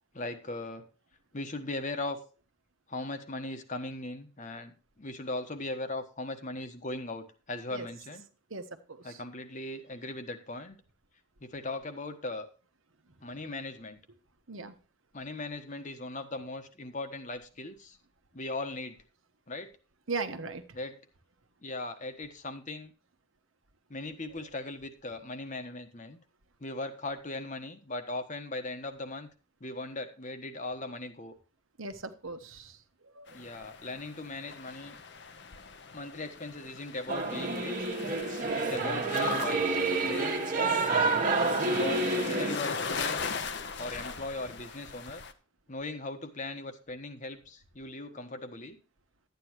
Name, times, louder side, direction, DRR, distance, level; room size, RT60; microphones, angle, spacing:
voice 1, 0.1-0.8 1.3-2.2 2.9-8.2 9.0-10.8 11.4-12.5 13.2-14.0 15.1-18.0 18.3-19.0 19.5-19.7 20.7-21.0 21.6-22.9 23.9-26.2 26.6-29.3 29.6-31.3 33.3-35.0 35.9-37.9 38.5-40.3 41.7-43.2 43.8-45.2 45.7-48.8, left 2 dB, 35° left, 8 dB, 1.2 m, -38 dB
voice 2, 8.5-9.2 14.5-14.8 20.1-20.6 31.8-32.8 33.1-33.3, right 3 dB, 75° right, 8 dB, 1.2 m, -38 dB
sound 1, 33.3-45.3, left 5 dB, 55° left, 0.9 m, -40 dB
Singing / Musical instrument, 37.1-42.6, right 3 dB, 40° right, 1.5 m, -28 dB
12.0 x 9.4 x 3.0 m, 0.36 s
head